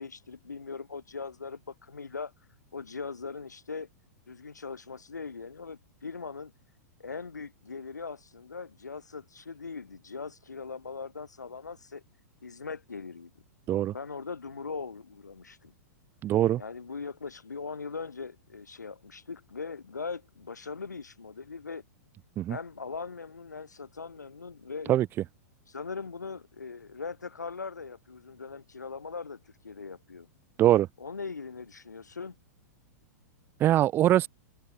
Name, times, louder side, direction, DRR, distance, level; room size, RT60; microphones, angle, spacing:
voice 1, 0.0-2.3 2.7-3.9 4.3-6.5 7.0-12.0 12.4-13.3 13.9-15.7 16.6-21.8 22.5-25.0 25.7-30.3 31.0-32.4, left 4 dB, 80° left, 1.2 m, -40 dB
voice 2, 16.2-16.6 22.4-22.6 24.9-25.1 30.6-30.9 33.6-34.3, right 13 dB, 25° right, 0.4 m, -22 dB
figure-of-eight pair, 100°, 9 cm